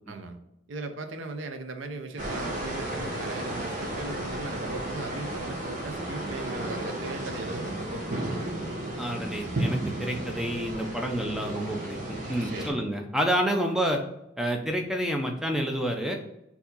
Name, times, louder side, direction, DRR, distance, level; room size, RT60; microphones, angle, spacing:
voice 1, 0.1-0.4 0.7-8.5 12.3-12.8, right 3 dB, 80° right, 7 dB, 0.6 m, -38 dB
sound 1, 2.2-12.7, right 1 dB, 40° right, 0.9 m, -33 dB
voice 2, 9.0-14.0 14.4-16.2, equal, 5° right, 2 dB, 0.5 m, -29 dB
4.6 x 2.7 x 3.9 m, 0.87 s
head